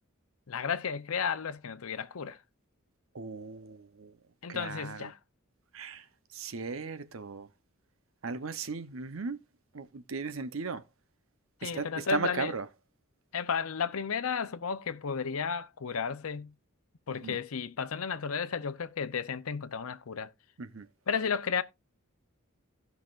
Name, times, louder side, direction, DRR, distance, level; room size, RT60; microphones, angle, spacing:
voice 1, 0.5-2.4 4.4-5.2 11.6-12.5 13.3-16.5 17.1-20.3 21.1-21.6, left 6 dB, 80° left, 0.7 m, -33 dB
voice 2, 3.1-4.1 4.5-5.1 5.7-6.0 6.3-7.5 8.2-9.4 9.7-10.8 11.6-12.7 17.2-17.4 20.6-20.9, right 4 dB, 70° right, 0.8 m, -37 dB
17.0 x 5.8 x 2.5 m
head